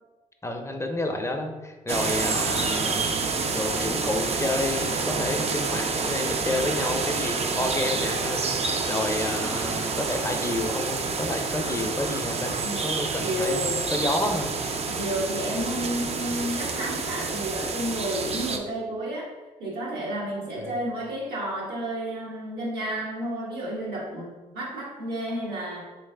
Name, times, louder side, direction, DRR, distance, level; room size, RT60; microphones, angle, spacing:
voice 1, 0.4-3.0 3.5-12.6 12.8-13.6 13.9-14.5 20.5-20.7, left 2 dB, 20° left, 4 dB, 0.6 m, -30 dB
sound 1, 1.9-18.6, right 4 dB, 40° right, 0.4 m, -28 dB
voice 2, 13.2-13.9 14.8-19.3 19.6-25.8, equal, 85° right, -6 dB, 1.3 m, -31 dB
3.4 x 3.2 x 3.4 m, 1.2 s
supercardioid pair, 60°, 16 cm